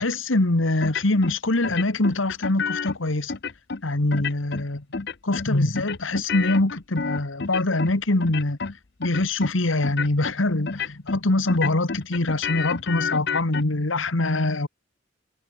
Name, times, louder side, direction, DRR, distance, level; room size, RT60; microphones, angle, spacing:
voice 1, 0.0-3.3 3.8-4.8 5.2-8.6 9.0-14.7, left 2 dB, 80° left, 1.7 m, -23 dB
sound 1, 0.8-1.4 1.6-3.0 3.3-3.8 4.1-4.7 4.9-5.5 5.8-8.7 9.0-9.5 9.8-10.3 10.7-11.2 11.5-13.6, left 5 dB, 55° left, 0.8 m, -29 dB
head